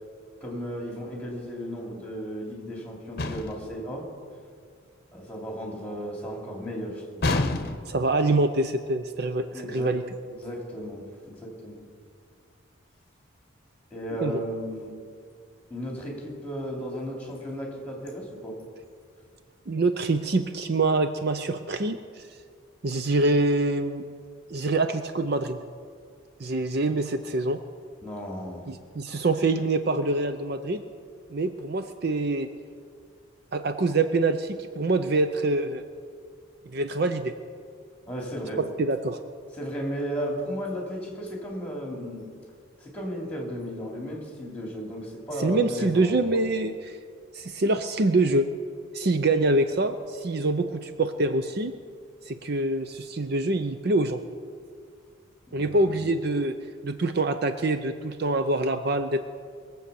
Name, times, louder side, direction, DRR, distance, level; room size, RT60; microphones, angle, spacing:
voice 1, 0.4-4.1 5.1-7.2 9.5-10.0 10.3-11.8 13.9-14.9 15.7-18.6 28.0-28.7 38.0-38.6 39.6-42.3 42.8-46.4 55.5-56.1, equal, 5° left, -1 dB, 3.0 m, -35 dB
sound 1, 3.2-3.7 7.2-8.0, left 2 dB, 50° left, 0.9 m, -27 dB
voice 2, 7.9-10.0 14.2-14.4 19.7-22.3 22.8-24.0 24.5-25.6 26.4-27.6 28.7-30.8 31.3-32.5 33.5-35.8 36.7-37.3 38.6-39.2 45.4-47.0 47.3-48.5 48.9-51.7 52.3-54.2 55.5-56.6 56.8-59.2, right 2 dB, 50° right, 9 dB, 0.6 m, -25 dB
21.5 x 7.8 x 7.0 m, 2.1 s
head